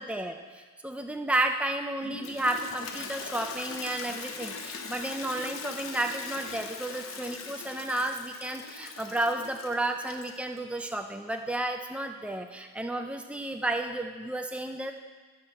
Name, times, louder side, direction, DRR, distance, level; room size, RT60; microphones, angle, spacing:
voice 1, 0.0-14.9, right 1 dB, 5° right, 4 dB, 0.4 m, -32 dB
Toilet flush, 2.0-10.6, left 4 dB, 70° left, 0.9 m, -40 dB
14.0 x 4.8 x 6.4 m, 1.4 s
head